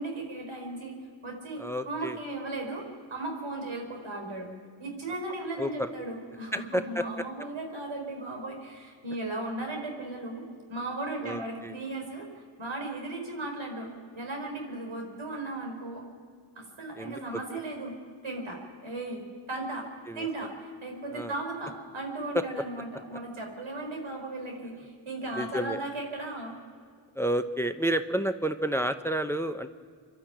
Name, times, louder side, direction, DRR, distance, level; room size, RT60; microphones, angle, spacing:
voice 1, 0.0-4.5 4.8-10.4 10.7-13.9 14.1-16.0 16.5-18.0 18.2-19.9 20.1-26.5, right 2 dB, 80° right, 2 dB, 5.0 m, -36 dB
voice 2, 1.6-2.2 5.6-5.9 6.5-7.2 11.2-11.7 16.9-17.4 20.1-20.3 21.1-21.3 22.3-22.4 25.3-25.8 27.1-29.7, right 1 dB, 5° left, 10 dB, 0.8 m, -30 dB
26.0 x 12.0 x 9.1 m, 2.1 s
cardioid pair, 60°, 47 cm